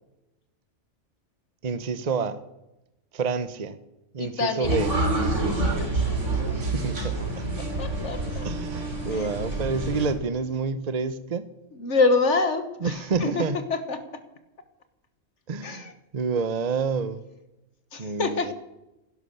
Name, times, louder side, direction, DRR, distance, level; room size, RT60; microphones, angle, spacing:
voice 1, 1.6-2.4 3.1-3.7 4.1-4.9 6.3-7.5 8.4-11.5 12.8-13.6 15.5-17.2 18.0-18.5, right 5 dB, 35° right, 13 dB, 0.9 m, -28 dB
voice 2, 4.2-4.8 7.8-8.5 9.1-9.3 11.7-13.4 13.7-14.0 15.6-15.9 17.9-18.5, left 3 dB, 70° left, 10 dB, 1.7 m, -26 dB
sound 1, 4.6-10.1, right 2 dB, 75° right, 3.6 m, -27 dB
16.5 x 11.5 x 6.7 m, 0.95 s
omnidirectional pair, 1.3 m